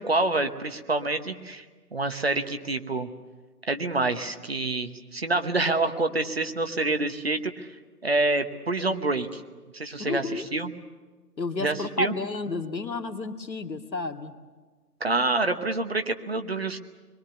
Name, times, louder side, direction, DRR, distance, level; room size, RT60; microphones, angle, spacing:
voice 1, 0.0-1.6 1.9-3.1 3.7-7.7 8.0-9.4 9.7-10.7 11.6-12.1 15.0-16.8, right 2 dB, 40° right, 7 dB, 1.1 m, -27 dB
voice 2, 10.0-10.5 11.4-14.3, left 3 dB, 90° left, 6 dB, 2.2 m, -31 dB
27.0 x 22.5 x 6.9 m, 1.3 s
figure-of-eight pair, 175°, 49 cm